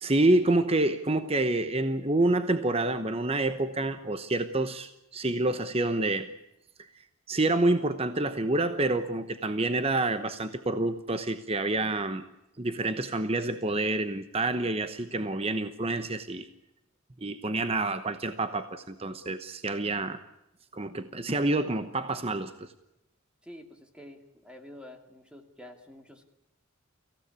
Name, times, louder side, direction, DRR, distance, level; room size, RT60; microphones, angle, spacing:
voice 1, 0.0-6.3 6.8-6.9 7.3-12.3 12.6-16.5 17.2-20.2 20.7-22.7, right 2 dB, 25° right, 10 dB, 0.9 m, -28 dB
voice 2, 23.4-26.2, left 1 dB, 5° right, 5 dB, 2.6 m, -48 dB
25.0 x 16.5 x 9.7 m, 0.88 s
head